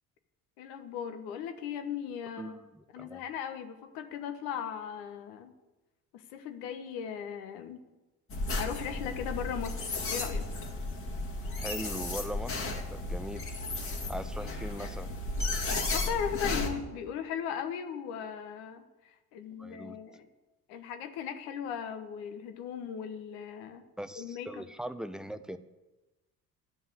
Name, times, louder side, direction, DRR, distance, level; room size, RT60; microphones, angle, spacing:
voice 1, 0.6-2.6 2.9-5.5 6.1-7.8 8.6-10.5 15.9-20.3 20.7-23.8 24.1-24.7, left 8 dB, 55° left, 8 dB, 1.2 m, -38 dB
voice 2, 2.4-3.2 11.6-13.5 14.1-15.1 19.6-20.0 24.0-25.6, equal, ahead, 12 dB, 0.5 m, -40 dB
sound 1, 8.3-16.7, left 2 dB, 30° left, 1.9 m, -34 dB
12.0 x 5.4 x 8.2 m, 1.1 s
figure-of-eight pair, 55°, 44 cm